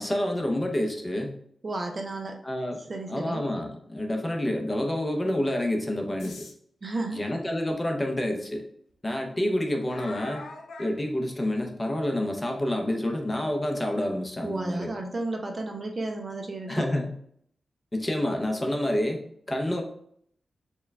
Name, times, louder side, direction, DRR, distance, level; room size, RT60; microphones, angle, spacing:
voice 1, 0.0-1.4 2.4-2.8 3.1-6.5 7.1-8.7 9.0-10.5 10.8-14.9 16.7-17.2 17.9-19.2 19.5-19.8, left 1 dB, 15° left, 3 dB, 0.5 m, -28 dB
voice 2, 1.6-2.4 2.9-3.4 6.8-7.2 14.4-16.9, right 2 dB, 35° right, 2 dB, 0.4 m, -33 dB
sound 1, 6.2-6.5 7.7-7.8 8.3-8.4 9.9-11.0, left 3 dB, 75° left, 0.6 m, -41 dB
4.4 x 2.2 x 3.4 m, 0.66 s
wide cardioid pair, 160°, 0 cm